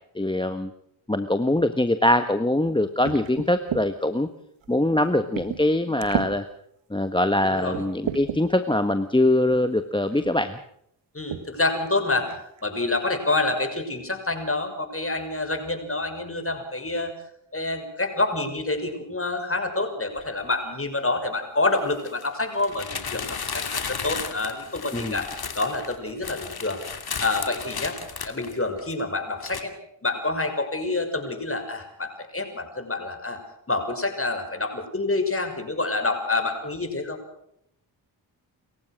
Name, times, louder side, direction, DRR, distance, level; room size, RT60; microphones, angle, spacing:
voice 1, 0.1-0.7 1.1-4.3 4.7-6.4 6.9-10.6 24.9-25.2, left 1 dB, 10° left, 9 dB, 1.3 m, -23 dB
sound 1, 3.0-3.9 4.6-4.7 5.3-5.7 6.0-6.3 7.0-7.1 7.7-8.4 9.5-9.6 10.1-10.4 11.3-11.5 11.8-11.9 12.3-12.6, right 9 dB, 85° right, 1.7 m, -32 dB
voice 2, 7.4-7.8 11.1-17.1 17.5-25.3 25.5-26.8 27.2-28.0 28.3-29.7 30.0-33.4 33.7-37.2, left 2 dB, 30° left, 6 dB, 6.0 m, -27 dB
sound 2, 20.2-20.3 21.8-29.0 29.4-29.6, left 6 dB, 55° left, 2.7 m, -34 dB
28.5 x 15.0 x 6.4 m, 0.74 s
supercardioid pair, 40°, 45 cm